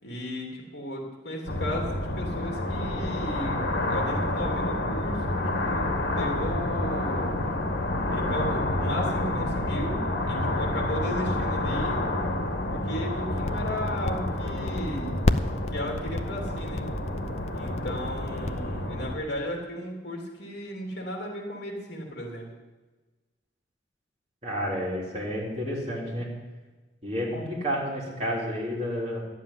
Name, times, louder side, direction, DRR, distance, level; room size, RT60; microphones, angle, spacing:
voice 1, 0.0-3.6 3.9-7.4 8.1-12.0 12.7-15.1 15.7-16.9 17.5-22.5, equal, 65° left, 0 dB, 3.0 m, -35 dB
sound 1, 1.5-19.2, left 1 dB, 85° left, 1.9 m, -29 dB
sound 2, 13.4-18.6, left 2 dB, 35° left, 0.5 m, -28 dB
voice 2, 24.4-26.3 27.0-29.3, equal, 35° right, -4 dB, 3.7 m, -30 dB
12.5 x 7.3 x 10.0 m, 1.2 s
head